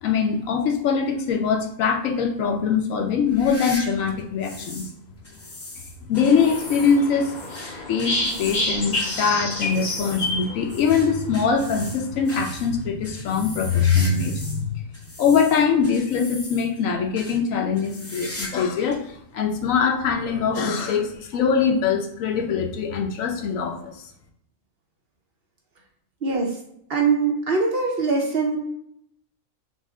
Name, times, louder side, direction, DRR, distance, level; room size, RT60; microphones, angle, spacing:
voice 1, 0.0-4.9 6.1-7.3 7.9-14.8 15.2-24.0, left 6 dB, 85° left, 2 dB, 1.1 m, -22 dB
sound 1, 3.3-4.9 5.2-14.6 14.9-16.8 17.1-17.4 17.8-18.7 18.9-19.0 19.8-19.9 21.1-21.2, left 1 dB, 20° left, 0.4 m, -39 dB
sound 2, 6.1-11.2, left 2 dB, 40° left, 0.8 m, -29 dB
voice 2, 26.2-26.6 26.9-28.6, right 4 dB, 55° right, 1 dB, 0.8 m, -22 dB
5.7 x 2.0 x 3.6 m, 0.72 s
omnidirectional pair, 1.4 m